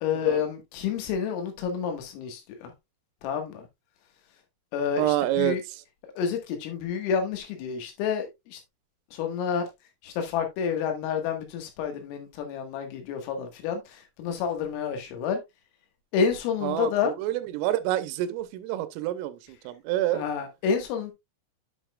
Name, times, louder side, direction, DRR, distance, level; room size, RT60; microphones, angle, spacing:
voice 1, 0.0-2.7 3.2-3.7 4.7-5.6 6.2-8.6 9.1-9.7 10.0-15.4 16.1-17.1 20.1-21.1, left 7 dB, 80° left, 4.2 m, -29 dB
voice 2, 5.0-5.8 16.6-20.2, right 14 dB, 85° right, 3.3 m, -28 dB
10.0 x 6.2 x 2.3 m
omnidirectional pair, 6.0 m